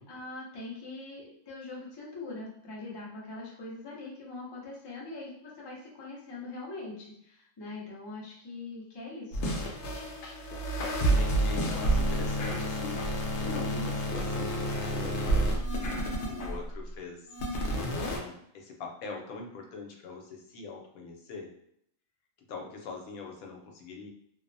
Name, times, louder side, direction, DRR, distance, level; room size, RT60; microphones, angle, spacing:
voice 1, 0.1-9.5, left 2 dB, 35° left, -4 dB, 0.4 m, -42 dB
sound 1, 9.3-16.8 17.3-18.2, right 1 dB, 65° left, 0.8 m, -29 dB
voice 2, 10.5-17.3 17.6-21.5 22.5-24.1, left 4 dB, 90° left, 1 dB, 1.1 m, -43 dB
2.7 x 2.0 x 2.5 m, 0.72 s
omnidirectional pair, 1.4 m